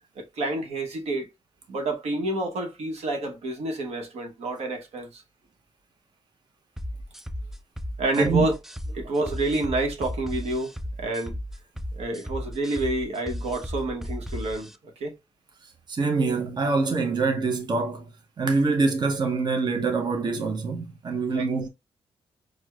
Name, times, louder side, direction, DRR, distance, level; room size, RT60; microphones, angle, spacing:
voice 1, 0.2-1.3 1.7-5.2 8.0-8.6 8.9-11.3 11.9-15.1 21.3-21.5, right 2 dB, 75° right, 0.9 m, -28 dB
sound 1, 6.8-14.8, equal, 5° right, 0.3 m, -35 dB
voice 2, 15.9-18.0 18.4-21.7, right 4 dB, 40° right, 0.7 m, -25 dB
4.5 x 2.1 x 2.3 m
cardioid pair, 85°, 11 cm